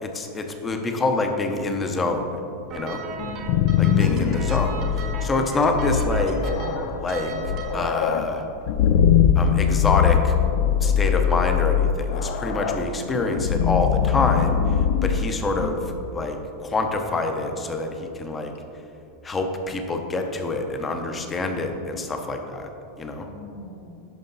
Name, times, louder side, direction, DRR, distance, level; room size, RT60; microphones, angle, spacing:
voice 1, 0.0-2.3 2.7-3.0 3.8-6.4 7.0-7.3 7.7-8.4 9.4-10.4 10.8-14.6 15.0-15.8 16.1-18.5 19.2-22.7 23.0-23.3, left 3 dB, 15° left, 5 dB, 0.7 m, -26 dB
sound 1, 2.7-7.9, right 4 dB, 35° right, 0.9 m, -36 dB
voice 2, 3.2-4.5 12.9-13.3 23.3-24.1, left 2 dB, 75° left, -1 dB, 1.8 m, -42 dB
sound 2, 3.2-16.1, left 8 dB, 55° left, 0.4 m, -22 dB
11.5 x 5.1 x 4.0 m, 2.8 s
supercardioid pair, 155°, 0 cm